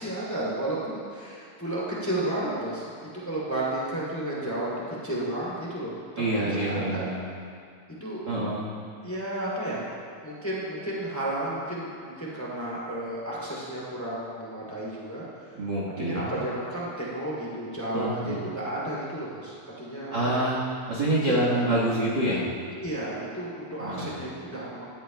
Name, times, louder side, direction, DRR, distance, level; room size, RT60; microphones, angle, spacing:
voice 1, 0.0-5.9 6.3-7.1 8.0-8.4 9.0-9.8 10.2-15.5 16.0-20.4 21.2-21.8 22.8-24.8, right 1 dB, 5° left, -6 dB, 2.1 m, -32 dB
voice 2, 6.2-7.2 8.3-8.7 15.6-16.4 17.9-18.4 20.1-20.6 20.9-22.5 23.8-24.1, right 1 dB, 50° right, -6 dB, 1.3 m, -26 dB
16.5 x 12.5 x 2.3 m, 2.2 s
omnidirectional pair, 4.2 m